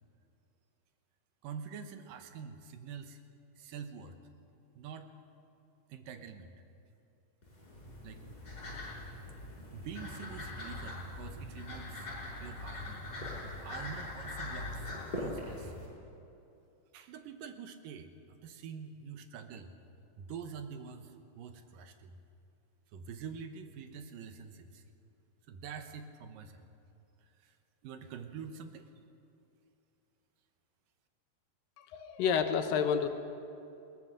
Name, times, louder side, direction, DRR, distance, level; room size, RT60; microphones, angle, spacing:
voice 1, 1.4-3.2 3.6-4.2 4.8-5.1 5.9-6.6 8.0-8.2 9.7-12.1 12.4-15.7 16.9-19.7 20.2-22.1 22.9-24.8 25.5-26.7 27.4-27.6 27.8-28.9, right 6 dB, 80° right, 7 dB, 2.7 m, -46 dB
sound 1, 7.4-15.9, left 2 dB, 25° left, 6.8 m, -42 dB
voice 2, 31.8-33.1, left 7 dB, 90° left, 7 dB, 2.8 m, -29 dB
21.0 x 18.5 x 6.8 m, 2.7 s
omnidirectional pair, 3.9 m